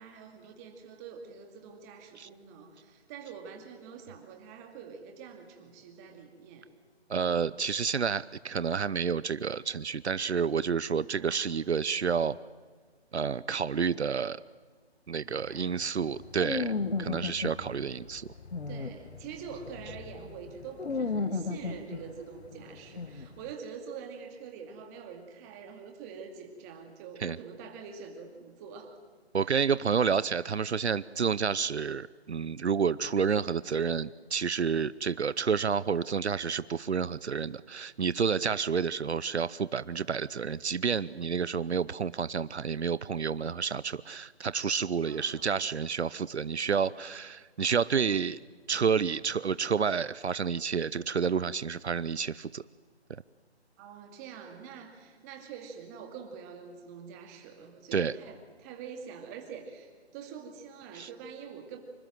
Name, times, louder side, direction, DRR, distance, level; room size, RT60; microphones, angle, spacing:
voice 1, 0.0-6.7 11.1-11.5 15.3-15.7 17.6-17.8 18.7-29.0 29.4-29.6 45.0-45.6 53.8-61.8, right 6 dB, 15° right, 4 dB, 2.4 m, -45 dB
voice 2, 7.1-12.4 13.1-14.4 15.1-16.7 17.0-18.3 27.2-27.4 29.3-48.4 48.7-52.6 57.9-58.1 60.9-61.1, right 6 dB, 80° right, 18 dB, 0.8 m, -29 dB
sound 1, 15.3-23.5, left 4 dB, 70° left, 1.7 m, -36 dB
26.5 x 25.5 x 7.7 m, 1.5 s
figure-of-eight pair, 160°, 33 cm